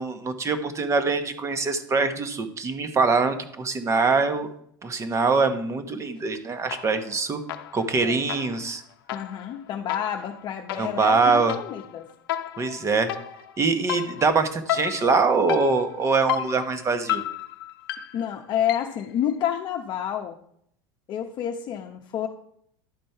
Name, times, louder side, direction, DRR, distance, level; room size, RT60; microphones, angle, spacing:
voice 1, 0.0-4.5 4.8-7.4 7.7-8.8 10.7-11.5 12.6-13.1 13.6-17.2, right 4 dB, 25° right, 9 dB, 1.1 m, -23 dB
sound 1, 6.7-7.2 7.5-19.1, left 12 dB, 90° left, 0.6 m, -33 dB
voice 2, 9.1-12.1 18.1-20.4 21.1-22.3, left 10 dB, 45° left, 3 dB, 0.8 m, -29 dB
11.0 x 5.2 x 4.5 m, 0.69 s
supercardioid pair, 115°, 12 cm